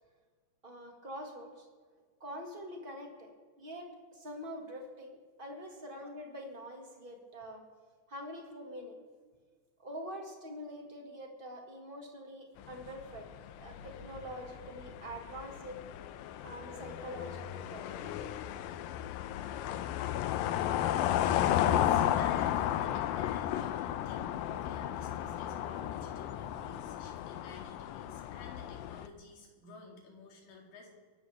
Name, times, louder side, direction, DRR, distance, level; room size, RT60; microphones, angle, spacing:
voice 1, 0.6-1.7 2.2-3.3 3.6-7.6 8.1-9.0 9.8-13.3 13.6-15.8 16.4-18.1, equal, 25° right, 1 dB, 1.1 m, -45 dB
sound 1, 12.6-29.1, left 11 dB, 85° left, 2.4 m, -34 dB
voice 2, 21.0-30.9, left 3 dB, 70° left, 0 dB, 4.0 m, -53 dB
24.5 x 12.0 x 3.5 m, 1.5 s
omnidirectional pair, 4.1 m